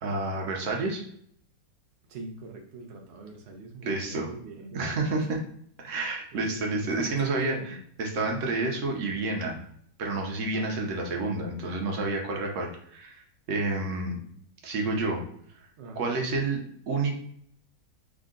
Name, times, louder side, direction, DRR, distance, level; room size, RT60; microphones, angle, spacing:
voice 1, 0.0-1.1 3.8-4.3 4.7-5.4 5.8-7.5 8.0-9.6 10.0-14.2 14.6-15.2 16.0-17.1, right 3 dB, 55° right, 1 dB, 0.9 m, -29 dB
voice 2, 2.1-5.2 6.3-7.8 10.5-11.2 15.8-16.3, right 3 dB, 85° right, 1 dB, 0.5 m, -42 dB
3.7 x 2.1 x 3.7 m, 0.65 s
omnidirectional pair, 1.9 m